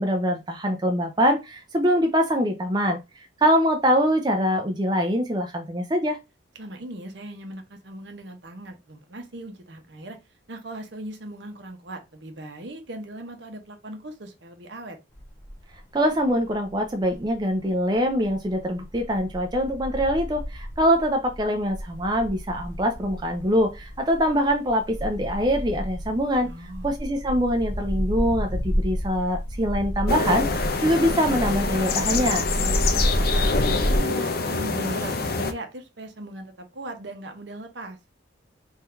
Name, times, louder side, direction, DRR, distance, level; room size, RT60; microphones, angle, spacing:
voice 1, 0.0-6.2 15.9-26.5 26.8-32.5, equal, 25° right, 0.5 m, -24 dB
voice 2, 6.6-10.2 10.5-15.0 26.4-27.0 32.5-38.0, right 1 dB, 70° right, 1.0 m, -38 dB
sound 1, 15.2-15.8 16.2-17.5 18.0-34.0, equal, 10° left, 1.1 m, -30 dB
sound 2, 30.1-35.5, left 4 dB, 55° left, 0.6 m, -26 dB
3.7 x 2.7 x 4.4 m
head